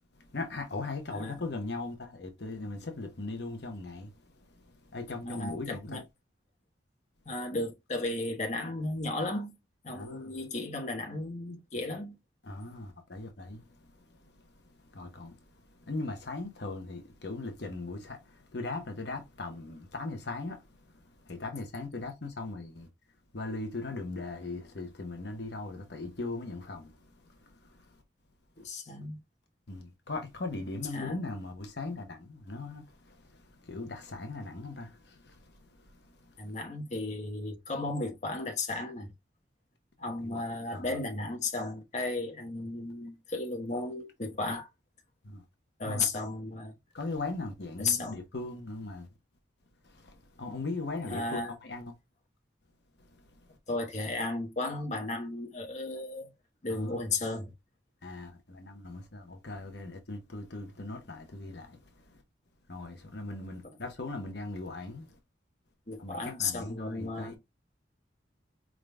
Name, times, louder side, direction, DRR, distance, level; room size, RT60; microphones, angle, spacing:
voice 1, 0.1-6.0 9.9-10.3 12.4-22.9 23.3-28.0 28.6-28.7 29.7-36.6 40.2-40.4 40.7-41.0 45.2-45.4 45.8-46.2 46.9-49.1 49.8-51.9 53.0-53.6 56.7-57.0 58.0-62.2 62.7-65.2 66.0-67.4, left 2 dB, 60° left, 1.0 m, -39 dB
voice 2, 5.2-6.0 7.2-9.6 9.8-12.2 28.6-29.2 30.9-31.2 36.4-39.1 40.0-44.7 45.8-46.7 47.8-48.2 51.1-51.5 53.7-56.3 56.6-57.5 65.9-67.4, left 2 dB, 40° left, 1.1 m, -34 dB
4.9 x 3.8 x 2.2 m
head